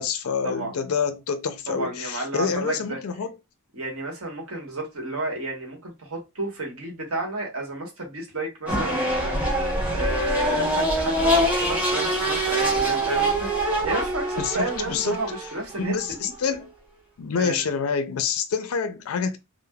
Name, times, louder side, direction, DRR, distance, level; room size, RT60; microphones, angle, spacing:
voice 1, 0.0-3.3 14.4-15.2 15.8-16.7 17.2-19.4, left 6 dB, 70° left, 0.4 m, -27 dB
voice 2, 1.7-3.0 3.7-9.4 9.9-13.5 13.8-16.3 17.3-17.6, right 2 dB, 70° right, 1.2 m, -31 dB
sound 1, 8.7-16.5, right 1 dB, 5° right, 0.8 m, -24 dB
3.2 x 2.0 x 2.2 m
head